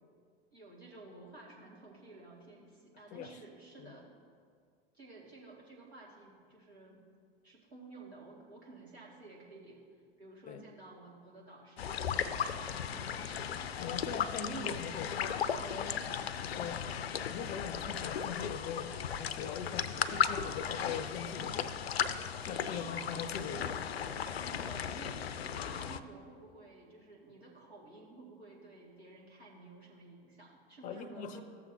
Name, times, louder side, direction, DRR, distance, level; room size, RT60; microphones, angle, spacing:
voice 1, 0.5-4.1 4.9-7.0 7.4-9.8 10.2-13.7 22.7-23.1 24.4-31.4, right 2 dB, 85° right, -5 dB, 2.2 m, -53 dB
sound 1, 11.8-26.0, left 8 dB, 75° left, 0.5 m, -36 dB
voice 2, 13.5-16.0 16.4-16.9 17.3-21.8 22.4-23.8 30.8-31.4, left 6 dB, 25° left, 11 dB, 0.5 m, -42 dB
14.0 x 7.2 x 2.8 m, 2.1 s
figure-of-eight pair, 90°, 31 cm